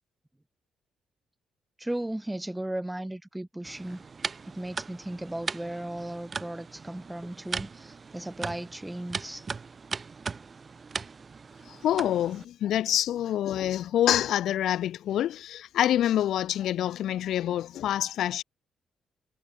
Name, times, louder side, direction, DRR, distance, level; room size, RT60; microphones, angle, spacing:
voice 1, 1.8-4.0 4.4-9.5, right 1 dB, 10° right, 1.8 m, -36 dB
sound 1, 3.6-12.5, right 5 dB, 35° right, 2.8 m, -39 dB
voice 2, 11.7-18.4, left 11 dB, 75° left, 1.5 m, -26 dB
cardioid pair, 90°, 0 cm